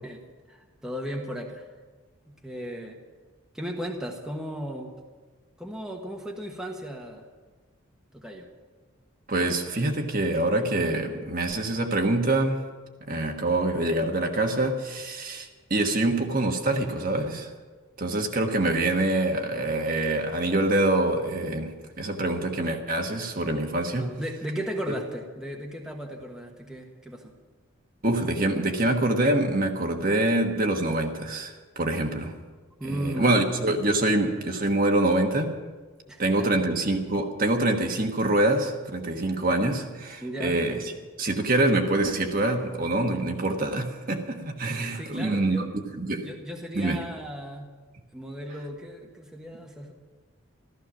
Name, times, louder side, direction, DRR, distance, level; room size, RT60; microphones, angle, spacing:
voice 1, 0.5-1.6 2.3-3.0 3.5-4.9 5.6-7.2 8.1-8.5 24.0-27.3 32.8-33.3 36.1-36.6 40.2-40.6 44.9-45.6 46.2-47.7 48.1-49.9, equal, 5° right, 0 dB, 1.3 m, -36 dB
voice 2, 9.3-12.7 13.1-17.5 18.0-24.1 28.0-32.4 32.8-35.5 36.2-40.8 41.2-46.3 46.7-47.0, right 2 dB, 45° right, 3 dB, 1.4 m, -25 dB
14.5 x 13.5 x 6.2 m, 1.4 s
head